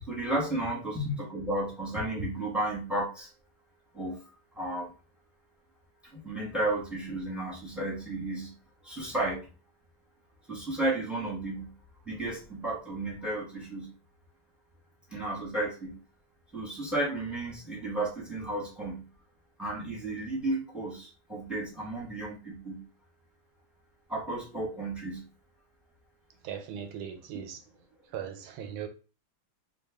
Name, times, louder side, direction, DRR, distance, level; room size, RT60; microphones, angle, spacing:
voice 1, 0.1-3.3 3.9-4.9 6.1-8.5 8.8-9.4 10.5-11.7 12.0-13.9 15.1-16.0 16.5-19.1 19.6-22.8 24.1-25.3, right 1 dB, ahead, 0.8 m, -33 dB
voice 2, 26.4-27.6 28.1-28.9, right 9 dB, 90° right, 1.5 m, -38 dB
3.3 x 2.4 x 3.4 m
omnidirectional pair, 2.2 m